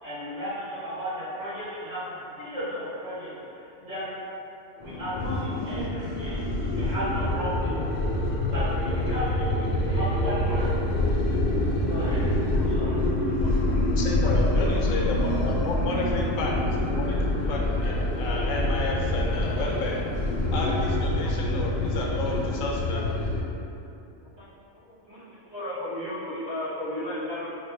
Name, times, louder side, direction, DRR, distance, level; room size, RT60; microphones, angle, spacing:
voice 1, 0.0-4.0 4.8-7.9 8.4-10.7 11.8-12.2 12.6-13.0, equal, 55° right, -13 dB, 1.9 m, -34 dB
sound 1, 4.8-23.4, left 1 dB, 55° left, 0.4 m, -26 dB
voice 2, 14.0-16.6 17.0-20.0 20.5-23.1, left 3 dB, 85° left, -2 dB, 1.0 m, -31 dB
voice 3, 24.9-27.4, left 1 dB, 25° right, -10 dB, 0.9 m, -34 dB
4.2 x 2.2 x 3.1 m, 2.9 s
omnidirectional pair, 1.3 m